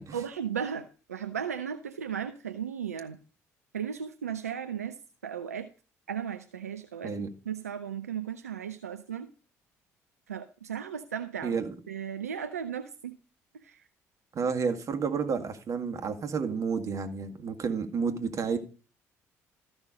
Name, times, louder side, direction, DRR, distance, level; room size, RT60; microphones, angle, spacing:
voice 1, 0.1-3.2 3.7-5.7 6.1-7.2 7.5-9.3 10.3-11.6 11.9-13.2 13.5-13.8, right 8 dB, 80° right, 0.6 m, -36 dB
voice 2, 11.4-11.7 14.3-18.6, right 5 dB, 40° right, 2.0 m, -30 dB
14.0 x 6.2 x 5.1 m
figure-of-eight pair, 50°, 8 cm